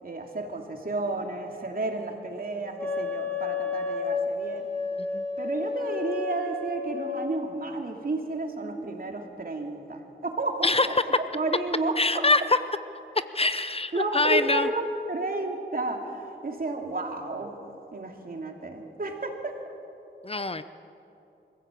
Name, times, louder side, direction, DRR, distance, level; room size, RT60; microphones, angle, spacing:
voice 1, 0.0-4.7 5.4-12.2 13.9-17.6 17.9-19.5, right 2 dB, 50° right, 2 dB, 2.9 m, -32 dB
Wind instrument woodwind instrument, 2.8-7.3, left 4 dB, 10° left, 5.1 m, -31 dB
voice 2, 10.6-11.0 12.0-12.6 13.3-14.7 20.2-20.6, left 2 dB, 30° left, 12 dB, 0.7 m, -24 dB
24.0 x 15.5 x 8.5 m, 2.8 s
wide cardioid pair, 70°, 19 cm